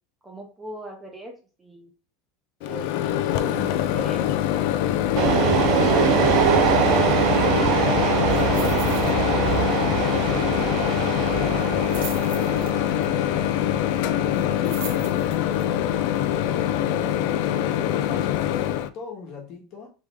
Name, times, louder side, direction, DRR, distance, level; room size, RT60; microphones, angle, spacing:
voice 1, 0.2-1.3 1.6-1.9 2.6-4.6, right 1 dB, 10° right, 0.8 m, -40 dB
Microwave oven, 2.6-18.9, left 11 dB, 70° left, 0.4 m, -24 dB
metro leaving the station, 5.2-18.2, right 10 dB, 50° right, 0.4 m, -24 dB
sound 1, 8.3-9.1 9.4-9.7 10.0-10.1 11.6-13.0 14.3-15.6 16.2-16.3, right 7 dB, 80° right, 1.0 m, -40 dB
voice 2, 13.8-17.2 17.6-19.9, left 5 dB, 45° left, 1.3 m, -41 dB
3.6 x 3.4 x 3.4 m
supercardioid pair, 155°, 0 cm